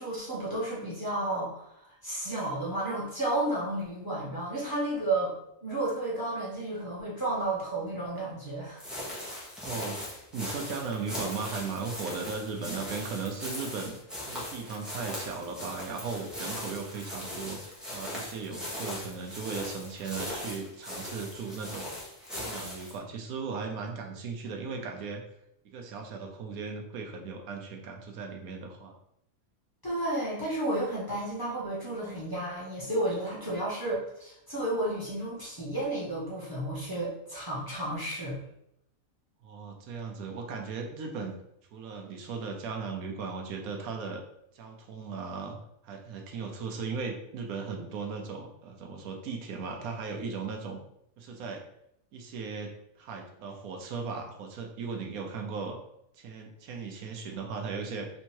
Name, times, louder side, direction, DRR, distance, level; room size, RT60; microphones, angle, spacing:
voice 1, 0.0-5.3 5.6-8.8 29.8-38.4, right 1 dB, 15° left, -8 dB, 1.4 m, -32 dB
sound 1, 8.8-23.0, left 1 dB, ahead, 0.9 m, -39 dB
voice 2, 9.6-10.0 10.3-14.0 14.3-21.9 22.4-25.2 25.6-28.9 39.4-41.4 41.7-44.2 44.5-45.6 45.8-50.8 51.2-51.6 52.1-55.8 56.2-58.1, right 5 dB, 85° right, 2 dB, 1.2 m, -37 dB
3.6 x 2.8 x 4.4 m, 0.77 s
omnidirectional pair, 1.5 m